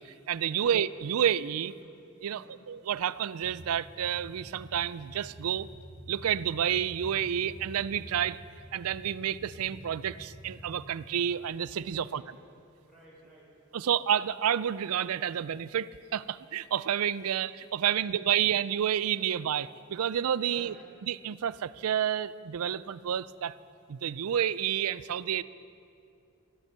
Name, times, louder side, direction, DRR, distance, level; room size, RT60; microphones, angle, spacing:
voice 1, 0.3-1.7 2.2-5.7 6.1-8.4 8.7-12.2 13.7-20.7 21.1-23.5 23.9-25.4, right 9 dB, 90° right, 18 dB, 0.4 m, -30 dB
voice 2, 1.6-2.0 2.2-2.6 11.9-12.6 12.8-13.5 18.1-18.2 20.4-20.9, equal, ahead, -7 dB, 4.3 m, -55 dB
sound 1, 3.4-10.9, equal, 15° left, 1.3 m, -48 dB
13.5 x 12.0 x 6.8 m, 2.6 s
head